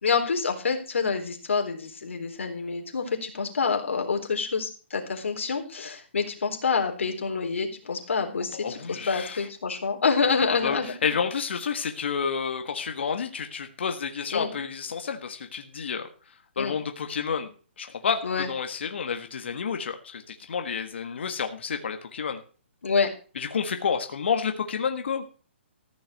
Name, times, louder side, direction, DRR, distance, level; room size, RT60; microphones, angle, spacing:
voice 1, 0.0-10.9 14.3-14.5 16.6-16.8 18.2-18.5 22.8-23.1, left 5 dB, 85° left, 4 dB, 3.8 m, -27 dB
voice 2, 8.5-9.5 10.5-16.1 16.6-17.5 17.8-22.4 23.3-25.2, left 6 dB, 65° left, 6 dB, 1.7 m, -30 dB
14.5 x 6.3 x 6.6 m, 0.39 s
hypercardioid pair, 170°, 7 cm